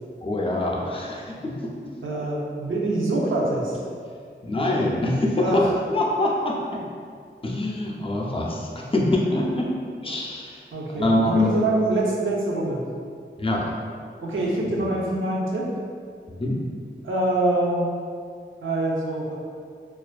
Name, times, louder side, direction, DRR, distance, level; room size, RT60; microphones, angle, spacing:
voice 1, 0.2-1.5 4.4-5.7 5.9-6.8 7.4-9.7 10.0-10.6 11.0-11.6 13.4-13.8 14.7-14.8 16.4-16.6, left 1 dB, 25° left, -2 dB, 0.4 m, -24 dB
voice 2, 2.0-3.8 5.4-5.7 10.7-12.8 14.2-15.7 17.0-17.9 18.6-19.3, right 2 dB, 80° right, -3 dB, 0.5 m, -25 dB
2.3 x 2.2 x 2.4 m, 2.2 s
wide cardioid pair, 50°, 20 cm